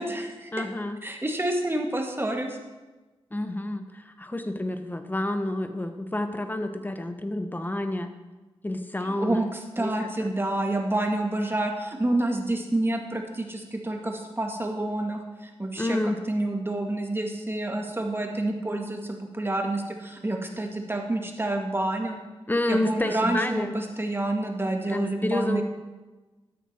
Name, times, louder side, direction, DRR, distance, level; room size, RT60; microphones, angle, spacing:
voice 1, 0.0-0.7 1.0-2.6 9.0-22.2 22.7-25.6, right 1 dB, 20° right, 2 dB, 1.9 m, -28 dB
voice 2, 0.5-1.0 3.3-8.1 8.6-9.5 9.8-9.9 10.2-10.3 15.8-16.2 22.5-23.7 24.9-25.6, left 1 dB, 20° left, 8 dB, 1.1 m, -29 dB
13.0 x 9.5 x 4.4 m, 1.2 s
cardioid pair, 60°, 10 cm